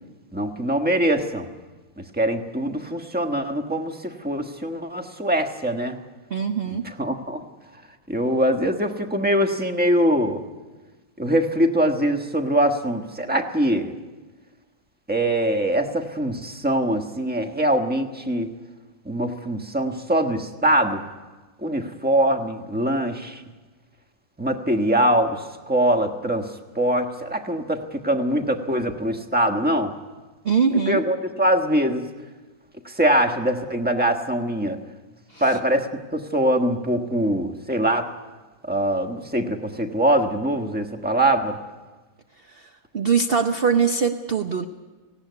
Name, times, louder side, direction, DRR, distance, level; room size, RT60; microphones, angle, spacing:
voice 1, 0.3-1.5 2.0-6.0 6.8-7.4 8.1-10.4 11.2-13.9 15.1-18.5 19.0-21.0 21.6-23.4 24.4-29.9 30.7-32.1 32.8-34.8 35.4-38.1 38.6-41.6, right 1 dB, 5° right, 5 dB, 1.0 m, -23 dB
voice 2, 6.3-6.9 30.4-31.0 35.3-35.6 42.5-44.6, right 6 dB, 50° right, 7 dB, 0.6 m, -22 dB
18.0 x 17.0 x 9.4 m, 1.2 s
omnidirectional pair, 2.0 m